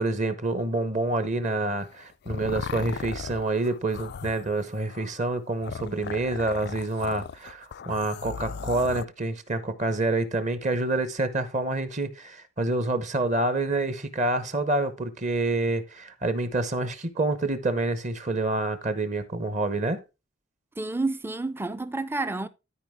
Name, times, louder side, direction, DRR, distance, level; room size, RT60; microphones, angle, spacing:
voice 1, 0.0-20.0, right 2 dB, 35° right, 0.9 m, -27 dB
sound 1, 1.8-9.0, left 6 dB, 50° left, 0.3 m, -38 dB
voice 2, 20.8-22.5, right 2 dB, 10° right, 0.5 m, -29 dB
13.0 x 4.9 x 3.6 m
head